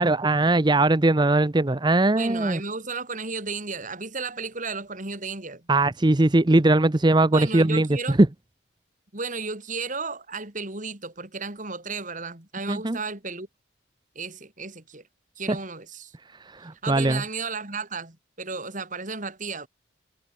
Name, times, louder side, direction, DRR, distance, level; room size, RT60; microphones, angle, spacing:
voice 1, 0.0-2.6 5.7-8.2 12.7-13.0 16.4-17.2, right 2 dB, 20° right, 0.6 m, -20 dB
voice 2, 2.0-5.7 7.3-8.2 9.1-13.5 14.1-15.1 15.4-16.1 16.8-19.7, right 4 dB, 40° right, 3.3 m, -34 dB
head